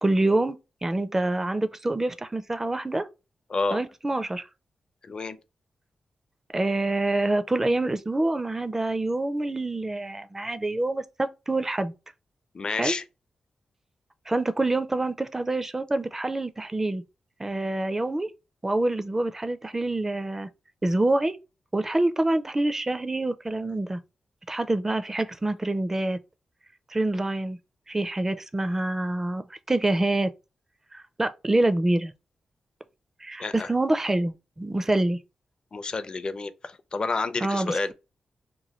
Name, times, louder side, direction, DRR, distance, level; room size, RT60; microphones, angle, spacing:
voice 1, 0.0-3.1 3.7-4.5 6.5-11.9 12.7-12.9 14.3-17.0 17.4-18.3 18.6-20.5 20.8-21.4 21.7-24.0 24.5-26.2 26.9-27.6 27.9-30.3 30.9-32.1 33.2-35.2 37.4-37.9, right 2 dB, 15° right, 0.4 m, -26 dB
voice 2, 12.5-13.0 33.4-33.7 35.7-37.9, left 3 dB, 40° left, 0.4 m, -29 dB
3.0 x 2.2 x 4.0 m
cardioid pair, 95°, 2 cm